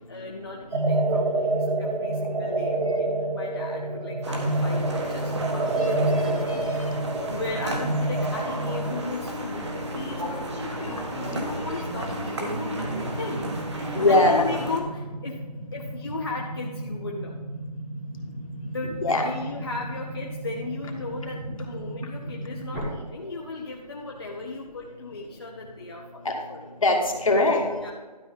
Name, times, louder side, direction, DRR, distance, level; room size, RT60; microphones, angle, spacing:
voice 1, 0.1-7.0 7.3-15.4 15.7-17.4 18.6-26.7 27.8-27.9, left 3 dB, 35° left, -1 dB, 0.8 m, -36 dB
sound 1, 0.7-9.0, right 2 dB, 85° right, 1.6 m, -27 dB
sound 2, 4.2-14.8, right 1 dB, 40° right, 1.6 m, -33 dB
voice 2, 5.8-6.2 6.5-6.6 7.1-7.3 13.9-14.4 19.0-19.2 26.3-26.4 26.8-27.7, left 2 dB, 50° left, 2 dB, 1.8 m, -21 dB
sound 3, 12.8-22.8, right 1 dB, ahead, 0.7 m, -36 dB
12.0 x 5.1 x 5.3 m, 1.3 s
figure-of-eight pair, 170°, 21 cm